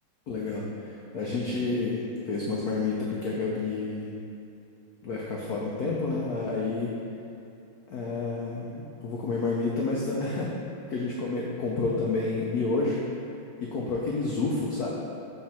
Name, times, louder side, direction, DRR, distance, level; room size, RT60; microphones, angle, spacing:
voice 1, 0.3-4.1 5.0-6.9 7.9-10.5 10.9-13.0 13.6-14.9, left 3 dB, 85° left, -3 dB, 0.8 m, -29 dB
6.0 x 3.8 x 4.2 m, 2.7 s
omnidirectional pair, 2.4 m